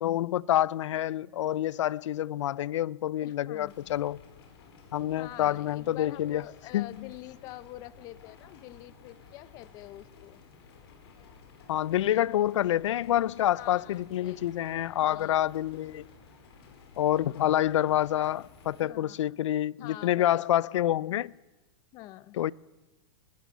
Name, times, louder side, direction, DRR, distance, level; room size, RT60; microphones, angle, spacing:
voice 1, 0.0-4.2 4.9-6.4 6.7-6.9 11.7-16.0 17.0-21.3 22.4-22.5, left 12 dB, 85° left, 0.6 m, -27 dB
voice 2, 3.2-3.9 5.1-10.4 12.1-12.7 13.5-14.5 15.0-15.4 17.3-17.5 18.8-19.3 19.8-20.4 21.9-22.4, left 16 dB, 25° left, 0.6 m, -46 dB
sound 1, 3.6-18.8, left 5 dB, 55° left, 4.9 m, -54 dB
21.0 x 14.0 x 9.4 m
supercardioid pair, 175°, 15 cm